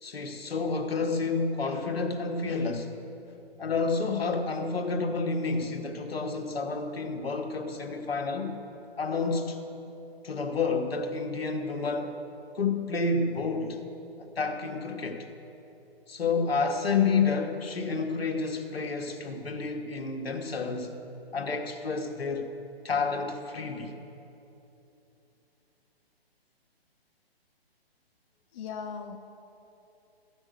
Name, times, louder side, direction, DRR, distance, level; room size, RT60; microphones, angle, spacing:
voice 1, 0.0-2.9 3.6-8.6 9.0-9.6 10.2-12.2 12.5-13.8 14.2-15.3 16.1-20.9 21.3-22.5 22.8-24.0, left 4 dB, 70° left, 3 dB, 1.5 m, -29 dB
voice 2, 28.5-29.2, left 6 dB, 30° left, 3 dB, 0.6 m, -37 dB
14.5 x 6.2 x 8.0 m, 3.0 s
figure-of-eight pair, 135°, 31 cm